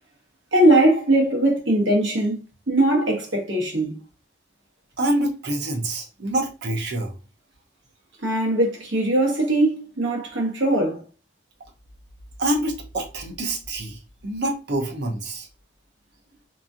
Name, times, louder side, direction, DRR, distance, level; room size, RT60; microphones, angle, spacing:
voice 1, 0.5-4.0 8.2-11.0, right 1 dB, 85° right, 1.1 m, -20 dB
voice 2, 5.0-7.2 12.4-15.5, right 1 dB, 65° right, 0.7 m, -26 dB
2.9 x 2.6 x 2.4 m
head